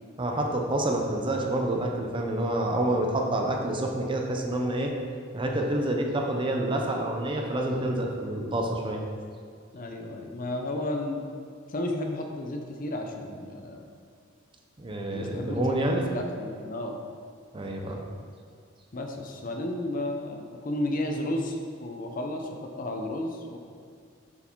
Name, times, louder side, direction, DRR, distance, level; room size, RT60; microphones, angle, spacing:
voice 1, 0.2-4.9 5.3-9.0 14.8-16.1 17.5-18.0, right 1 dB, 25° right, 1 dB, 0.6 m, -28 dB
voice 2, 9.7-11.3 11.7-13.9 15.1-15.8 16.1-17.0 18.9-23.6, left 1 dB, 40° left, 3 dB, 0.6 m, -33 dB
6.8 x 4.8 x 4.5 m, 2.2 s
head